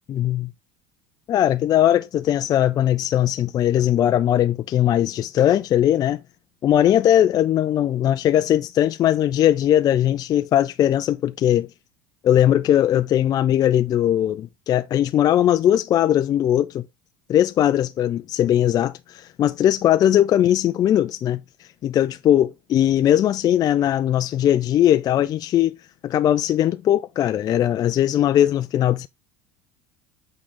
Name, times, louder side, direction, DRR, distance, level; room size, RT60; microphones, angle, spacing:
voice 1, 0.1-0.5 1.3-6.2 6.6-11.7 12.2-16.8 17.3-25.8 26.0-29.1, left 11 dB, 40° left, 0.4 m, -19 dB
8.5 x 3.8 x 3.7 m
supercardioid pair, 105°, 10 cm